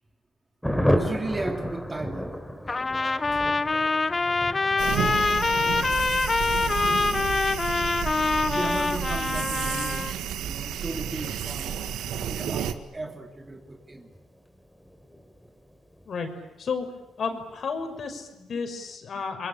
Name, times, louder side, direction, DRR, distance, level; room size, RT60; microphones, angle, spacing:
Thunder, 0.6-16.7 17.0-17.1 17.4-17.5 17.8-18.2, equal, ahead, 3.6 m, -35 dB
voice 1, 0.9-3.4 4.7-5.9 8.5-10.1 10.4-11.8 12.2-14.1, right 2 dB, 20° right, 4 dB, 3.0 m, -36 dB
Trumpet, 2.7-10.1, left 3 dB, 25° left, 1.0 m, -25 dB
sound 1, 4.8-12.7, right 9 dB, 85° right, 1.8 m, -31 dB
voice 2, 17.2-19.5, left 5 dB, 55° left, 6 dB, 5.9 m, -32 dB
30.0 x 22.5 x 8.9 m, 0.98 s
cardioid pair, 90°, 0 cm